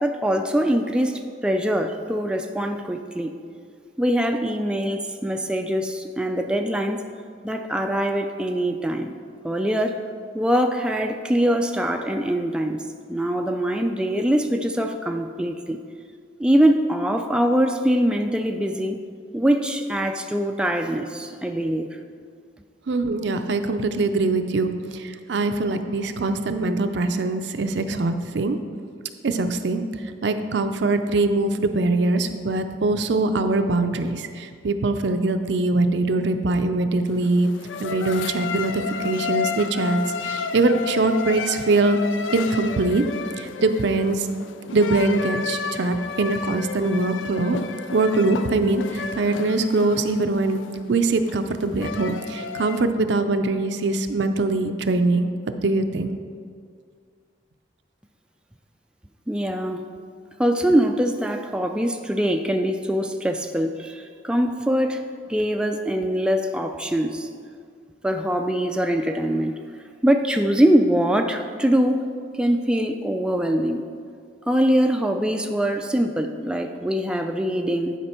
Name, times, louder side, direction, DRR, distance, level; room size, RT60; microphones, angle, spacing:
voice 1, 0.0-3.3 4.0-7.0 7.4-9.1 9.4-10.0 10.3-12.8 13.1-15.8 16.4-19.0 19.3-22.0 59.3-59.8 60.4-65.0 65.3-67.3 68.0-69.5 70.0-72.0 72.4-73.8 74.5-78.0, equal, 5° right, 4 dB, 0.3 m, -23 dB
voice 2, 22.9-28.6 29.2-37.5 37.8-42.0 42.3-43.0 43.4-44.3 44.7-47.6 47.9-50.6 50.9-56.1, right 2 dB, 65° right, 8 dB, 0.5 m, -22 dB
sound 1, 37.1-52.8, left 5 dB, 90° left, 0.4 m, -32 dB
11.0 x 5.1 x 4.4 m, 2.1 s
head